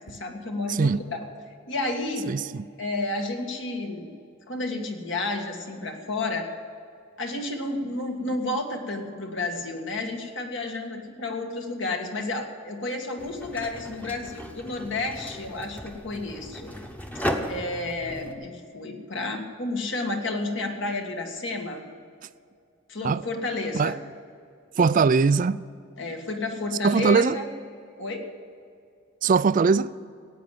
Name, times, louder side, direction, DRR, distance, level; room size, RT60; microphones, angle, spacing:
voice 1, 0.1-1.3 1.7-2.3 2.8-4.1 4.5-6.5 7.2-16.7 17.5-21.8 22.9-24.0 26.0-27.5 28.0-28.3, left 2 dB, 60° left, 1.9 m, -31 dB
voice 2, 2.3-2.6 23.0-23.2 23.7-23.9 24.8-25.6 26.8-27.4 29.2-29.9, right 5 dB, 40° right, 0.3 m, -21 dB
sound 1, 13.2-18.3, equal, 10° left, 1.0 m, -35 dB
16.0 x 9.3 x 7.5 m
head